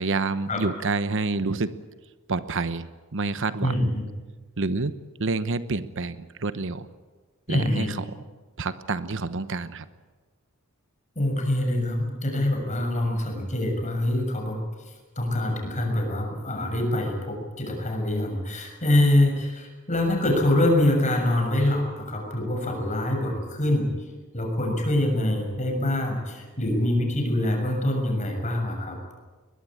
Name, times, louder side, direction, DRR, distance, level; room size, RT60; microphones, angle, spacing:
voice 1, 0.0-1.8 2.3-2.9 3.1-3.9 4.6-4.9 5.2-6.9 7.5-8.0 8.6-9.8, right 3 dB, 60° right, 13 dB, 1.0 m, -28 dB
voice 2, 3.6-4.1 7.5-7.9 11.1-14.6 15.1-23.9 24.3-29.0, left 1 dB, 35° left, 2 dB, 6.7 m, -25 dB
22.0 x 21.0 x 8.7 m, 1.3 s
head